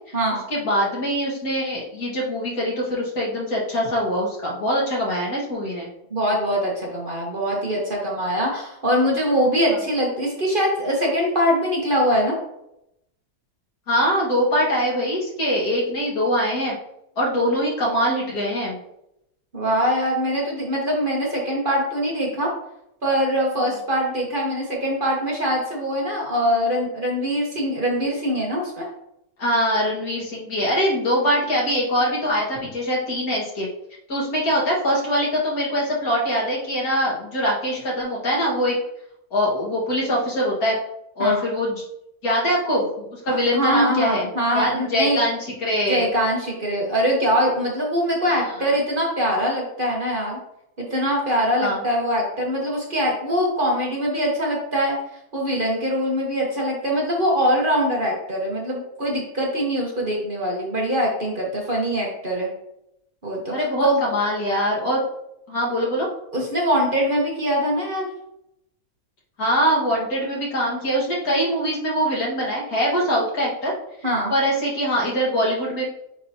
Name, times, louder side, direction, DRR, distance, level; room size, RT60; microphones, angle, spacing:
voice 1, 0.5-5.9 13.9-16.8 17.2-18.8 29.4-33.7 34.1-38.8 39.3-40.8 41.2-41.8 42.2-46.1 48.3-48.6 51.5-51.8 63.5-65.0 65.5-66.1 69.4-73.7 74.3-75.8, equal, 65° left, -4 dB, 2.2 m, -23 dB
voice 2, 6.1-12.3 19.5-22.5 23.0-28.8 41.2-41.4 43.3-45.2 45.9-50.4 50.8-55.0 55.3-62.5 63.2-64.0 66.3-68.1 74.0-74.3, equal, 35° right, -3 dB, 1.3 m, -23 dB
9.1 x 3.9 x 2.8 m, 0.81 s
omnidirectional pair, 1.7 m